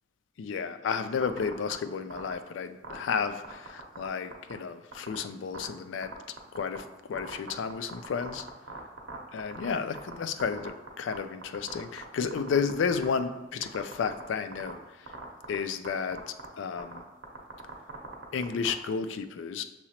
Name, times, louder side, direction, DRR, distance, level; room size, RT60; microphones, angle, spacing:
voice 1, 0.4-6.1 6.5-8.4 9.3-15.1 15.5-16.2 16.6-17.0 18.3-19.6, left 6 dB, 75° left, 10 dB, 0.3 m, -32 dB
sound 1, 1.2-1.7 2.1-2.3 2.8-4.1 4.3-4.5 4.9-5.1 5.5-5.6 6.0-6.8 7.1-10.1 10.4-11.2 11.4-12.0 12.3-13.2 13.6-14.2 14.5-14.7 15.1-15.5 15.8-15.9 16.1-16.4 16.8-17.0 17.2-18.7, right 4 dB, 85° right, 0.8 m, -40 dB
6.1 x 2.8 x 2.8 m, 1.0 s
head